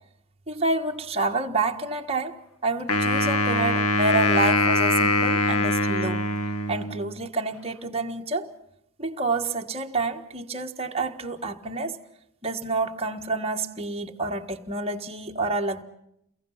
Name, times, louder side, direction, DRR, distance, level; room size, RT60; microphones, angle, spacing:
voice 1, 0.5-6.2 6.7-8.6 9.0-12.0 12.4-15.8, right 3 dB, 25° right, 1.5 m, -28 dB
Wind instrument woodwind instrument, 2.9-7.2, left 2 dB, 85° left, 1.6 m, -23 dB
29.5 x 22.5 x 5.7 m
head